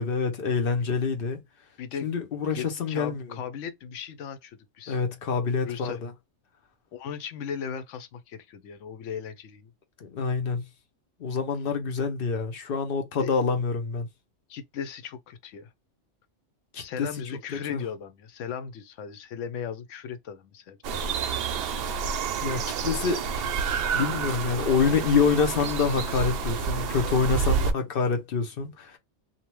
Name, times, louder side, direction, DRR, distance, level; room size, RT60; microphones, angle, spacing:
voice 1, 0.0-1.4 2.0-3.4 4.9-6.1 10.0-10.6 11.2-14.1 16.7-17.1 17.7-17.8 22.4-23.2 23.9-29.0, left 5 dB, 55° left, 0.8 m, -26 dB
voice 2, 1.8-5.0 5.6-6.0 6.9-9.7 13.2-13.3 14.5-15.7 16.8-21.4 23.1-23.4 27.5-27.9, left 7 dB, 85° left, 0.9 m, -38 dB
sound 1, 20.8-27.7, right 5 dB, 65° right, 0.7 m, -29 dB
2.7 x 2.1 x 3.0 m
omnidirectional pair, 1.2 m